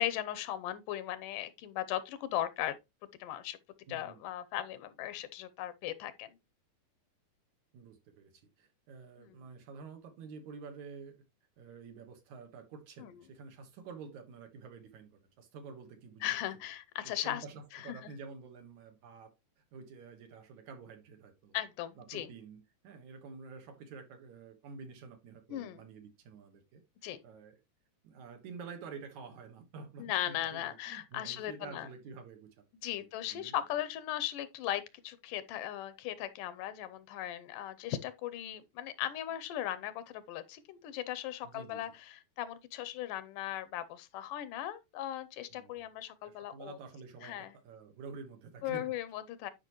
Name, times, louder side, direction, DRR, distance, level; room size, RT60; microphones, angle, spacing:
voice 1, 0.0-2.8 3.2-3.6 3.9-6.4 9.2-9.4 13.0-13.1 16.2-17.5 17.7-18.1 21.5-22.3 25.5-25.8 27.0-27.2 30.0-31.9 32.8-46.8 47.2-47.5 48.6-49.5, left 12 dB, 85° left, 2.4 m, -38 dB
voice 2, 3.9-4.2 7.7-11.2 11.6-16.3 17.0-19.3 19.6-21.6 22.0-27.6 28.0-32.6 33.0-33.6 41.4-41.9 45.5-45.9 46.2-47.4 47.6-48.9, right 5 dB, 65° right, 2.7 m, -49 dB
10.5 x 5.2 x 3.1 m
omnidirectional pair, 3.7 m